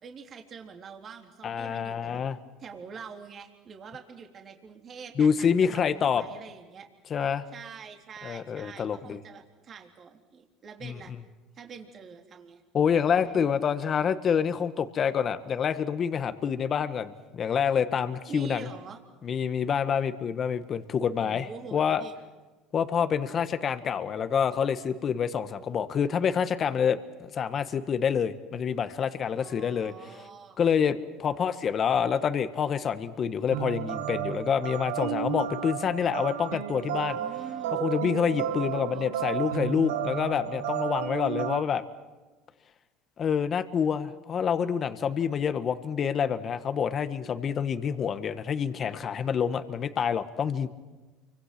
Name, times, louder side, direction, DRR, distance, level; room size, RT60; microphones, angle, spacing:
voice 1, 0.0-2.2 2.6-6.9 7.5-11.1 11.5-12.6 18.3-19.0 21.2-22.1 29.3-30.6 37.1-37.9 38.5-39.1, right 6 dB, 40° right, 3 dB, 3.5 m, -45 dB
voice 2, 1.4-2.4 5.2-6.2 7.1-7.4 8.2-9.2 10.8-10.9 12.7-18.7 19.2-22.0 22.7-27.0 27.3-29.9 30.6-37.2 37.7-41.8 43.2-50.7, left 7 dB, 40° left, 11 dB, 1.5 m, -27 dB
sound 1, 33.5-41.6, right 11 dB, 90° right, 1.6 m, -32 dB
30.0 x 25.0 x 6.1 m, 1.2 s
supercardioid pair, 95°, 0 cm